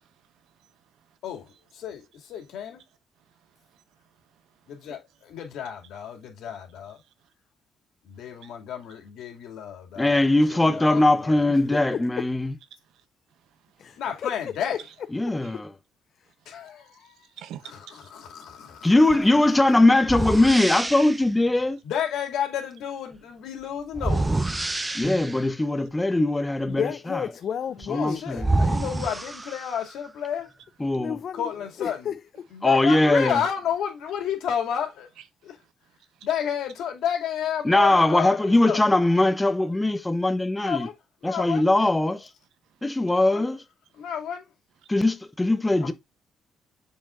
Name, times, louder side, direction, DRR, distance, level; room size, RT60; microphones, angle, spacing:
voice 1, 0.2-1.2 3.2-5.0 7.0-7.3 8.2-8.6 12.9-14.0 15.4-15.5 16.3-16.6 17.4-17.6 17.9-18.8 24.6-25.0 36.1-36.3 42.6-42.8, right 10 dB, 85° right, 0.8 m, -51 dB
voice 2, 1.2-2.8 4.7-7.0 8.0-10.2 10.5-11.4 14.0-14.8 16.5-16.8 17.9-19.0 21.8-24.3 27.8-30.5 31.3-32.1 32.5-35.1 35.4-35.6 36.2-38.9 40.6-41.0 41.2-41.7 43.3-43.4 43.9-44.5 45.8-45.9, left 9 dB, 80° left, 2.4 m, -31 dB
voice 3, 10.0-12.5 15.1-15.7 18.8-21.8 24.9-26.9 27.9-28.6 30.8-31.2 32.6-33.4 37.6-40.9 41.2-42.3 42.8-43.6 44.9-45.9, left 2 dB, 15° left, 0.9 m, -21 dB
voice 4, 11.5-12.3 13.8-14.8 15.5-15.6 16.2-16.3 26.7-28.2 30.9-31.5 31.8-32.6, left 8 dB, 60° left, 0.4 m, -33 dB
sound 1, 19.1-19.3 20.0-21.3 23.9-25.5 27.8-27.9 28.4-30.0, right 2 dB, 15° right, 0.7 m, -27 dB
7.1 x 5.7 x 2.5 m
cardioid pair, 90°, 0 cm